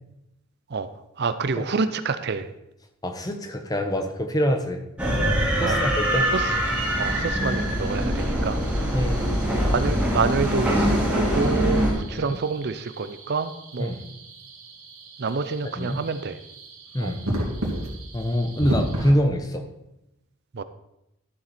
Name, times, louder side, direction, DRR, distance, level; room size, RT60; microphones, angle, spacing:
voice 1, 1.2-2.5 5.6-5.9 6.3-6.5 6.9-8.9 9.4-14.0 15.2-16.4 17.0-17.2 20.5-20.6, right 4 dB, 50° right, 11 dB, 0.5 m, -28 dB
voice 2, 3.0-4.8 5.6-6.3 8.9-9.3 12.1-12.4 13.8-14.1 15.8-16.0 16.9-17.2 18.1-19.7, equal, 15° left, 6 dB, 0.9 m, -25 dB
sound 1, 5.0-11.9, equal, 5° right, 2.7 m, -23 dB
sound 2, 6.5-19.1, right 1 dB, 80° right, 2.3 m, -36 dB
12.5 x 7.4 x 4.2 m, 0.88 s
head